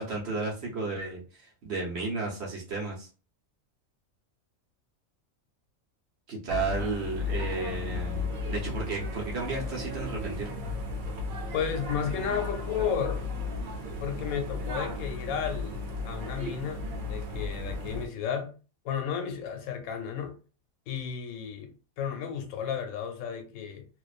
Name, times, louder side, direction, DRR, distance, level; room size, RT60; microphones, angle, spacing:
voice 1, 0.0-3.1 6.3-10.5, right 3 dB, 55° right, 1.0 m, -33 dB
sound 1, 6.5-18.1, left 3 dB, 80° right, 1.1 m, -34 dB
voice 2, 11.5-13.3 14.0-18.6 18.8-20.4 20.9-23.9, left 7 dB, 80° left, 1.1 m, -33 dB
2.5 x 2.2 x 2.3 m
omnidirectional pair, 1.5 m